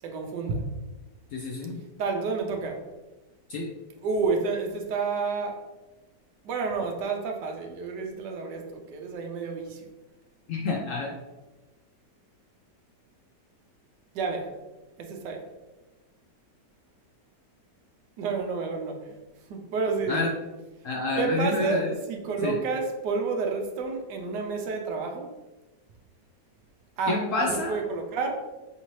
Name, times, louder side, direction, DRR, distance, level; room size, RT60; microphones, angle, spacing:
voice 1, 0.0-0.6 2.0-2.8 4.0-5.6 6.4-9.9 14.1-14.5 15.0-15.4 18.2-19.1 19.5-20.3 21.2-25.3 27.0-28.4, right 4 dB, 80° right, 3 dB, 1.3 m, -30 dB
voice 2, 1.3-1.8 3.5-3.7 10.5-11.1 20.1-20.3 20.8-21.9 22.4-22.6 27.1-27.8, left 3 dB, 70° left, -1 dB, 0.8 m, -28 dB
5.7 x 2.7 x 3.0 m, 1.1 s
omnidirectional pair, 1.8 m